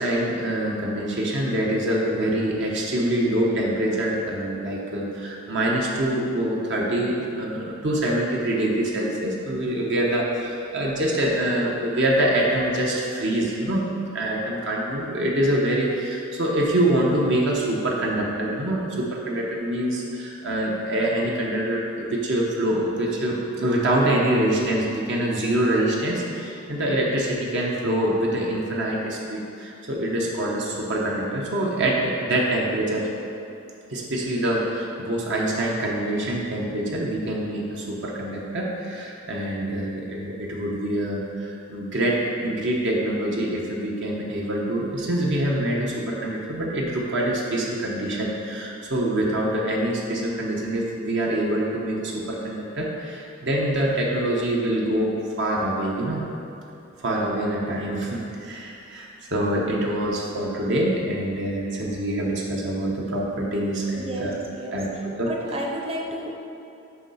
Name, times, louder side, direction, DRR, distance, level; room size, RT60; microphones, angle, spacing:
voice 1, 0.0-13.8 14.1-33.1 33.9-56.2 57.0-64.4 64.7-64.9 65.2-65.3, right 1 dB, 60° right, -3 dB, 0.9 m, -25 dB
voice 2, 63.9-66.3, equal, 30° right, -1 dB, 0.8 m, -33 dB
8.0 x 3.1 x 5.5 m, 2.8 s
head